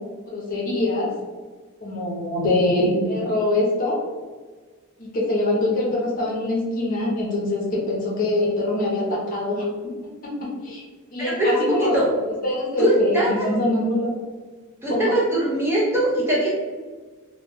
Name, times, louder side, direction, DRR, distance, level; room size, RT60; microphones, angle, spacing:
voice 1, 0.3-1.1 1.8-4.0 5.0-9.7 10.2-10.3 10.6-10.8 11.1-12.0 12.4-14.1 14.9-15.1, left 1 dB, 40° left, -4 dB, 0.7 m, -23 dB
voice 2, 11.2-12.1 12.8-13.5 14.8-16.5, right 1 dB, 10° right, -6 dB, 0.4 m, -21 dB
2.2 x 2.2 x 3.3 m, 1.4 s
head